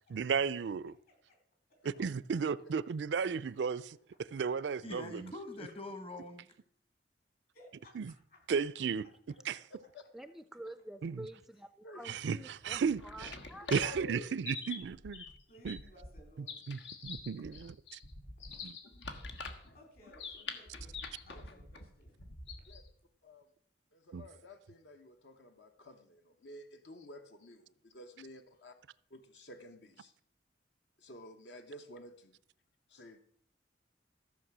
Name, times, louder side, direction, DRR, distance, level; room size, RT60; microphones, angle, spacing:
voice 1, 0.1-1.0 1.8-4.0 4.3-5.3 8.0-8.1 8.5-9.0 9.5-9.6 11.0-11.3 12.0-13.3 13.7-15.2 15.6-15.8 16.7-18.0 18.6-18.7 24.1-24.2, right 6 dB, 75° right, 0.4 m, -34 dB
voice 2, 1.1-1.4 1.7-1.8 7.5-8.4 8.7-9.1 13.6-13.8 15.5-16.7 18.4-18.7 19.7-22.2 22.5-22.6 28.5-28.6, equal, 55° left, 3.8 m, -60 dB
voice 3, 4.8-6.5, left 1 dB, 35° left, 1.0 m, -44 dB
voice 4, 10.1-14.0, right 1 dB, ahead, 0.3 m, -48 dB
sound 1, 12.7-22.9, left 4 dB, 90° left, 1.4 m, -46 dB
voice 5, 13.7-14.4 22.7-22.8 23.2-23.5 23.9-28.8 29.1-30.1 31.0-32.4 32.9-33.2, left 1 dB, 70° left, 1.0 m, -51 dB
14.0 x 6.6 x 6.1 m
head